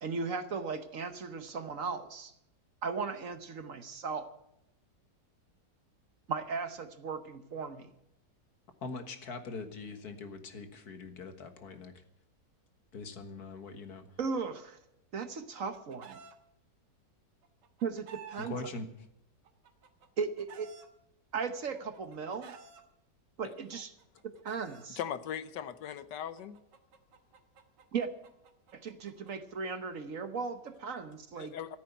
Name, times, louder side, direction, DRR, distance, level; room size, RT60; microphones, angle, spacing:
voice 1, 0.0-2.3 2.8-4.3 6.3-7.9 14.2-14.8 15.1-16.2 17.8-18.5 20.2-20.7 21.3-22.5 23.4-23.9 24.2-25.0 27.9-28.1 28.7-31.6, right 5 dB, 55° right, 10 dB, 1.3 m, -37 dB
voice 2, 8.8-12.0 12.9-14.1 18.4-18.9, left 3 dB, 60° left, 8 dB, 2.0 m, -42 dB
Chicken rooster, 15.4-16.3 17.4-18.5 19.4-20.9 21.7-22.8 23.8-24.9 26.0-29.3, right 7 dB, 80° right, 2.0 m, -52 dB
voice 3, 24.8-26.6 31.3-31.8, left 9 dB, 75° left, 14 dB, 1.4 m, -39 dB
14.5 x 8.6 x 9.2 m, 0.80 s
omnidirectional pair, 1.9 m